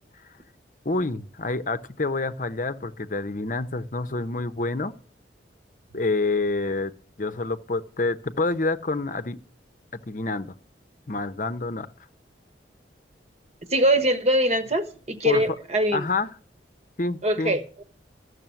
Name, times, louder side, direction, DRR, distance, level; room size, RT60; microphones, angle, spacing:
voice 1, 0.8-4.9 5.9-6.9 7.2-9.4 10.1-10.5 11.1-11.9 15.2-15.6 15.9-16.3 17.0-17.6, left 3 dB, 45° left, 0.8 m, -27 dB
voice 2, 13.7-16.0 17.2-17.8, right 1 dB, 35° right, 1.3 m, -23 dB
14.0 x 6.6 x 9.0 m
head